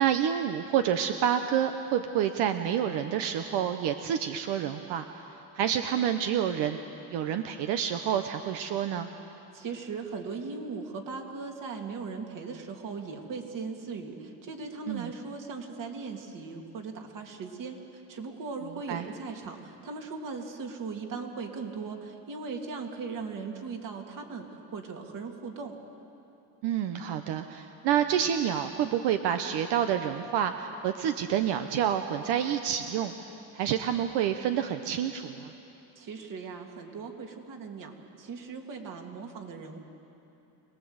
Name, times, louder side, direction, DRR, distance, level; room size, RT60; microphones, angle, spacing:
voice 1, 0.0-5.0 5.5-6.8 7.1-9.1 14.9-15.1 18.9-19.1 26.6-33.1 33.5-35.5, right 9 dB, 85° right, 7 dB, 1.0 m, -28 dB
voice 2, 9.5-25.8 36.0-39.8, right 4 dB, 50° right, 3 dB, 2.5 m, -38 dB
25.0 x 19.0 x 8.0 m, 2.9 s
cardioid pair, 155°, 40 cm